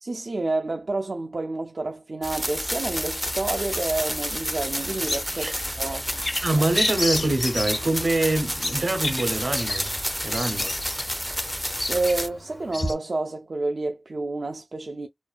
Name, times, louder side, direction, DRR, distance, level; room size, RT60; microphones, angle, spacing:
voice 1, 0.0-6.0 11.9-15.1, right 2 dB, 70° right, 0.3 m, -29 dB
sound 1, 2.2-12.3, equal, 5° left, 0.5 m, -30 dB
Bird vocalization bird call bird song, 4.6-12.9, left 1 dB, 60° left, 0.9 m, -32 dB
voice 2, 6.4-9.9 10.2-10.8, right 2 dB, 90° right, 0.7 m, -25 dB
2.4 x 2.2 x 2.3 m
wide cardioid pair, 45°, 0 cm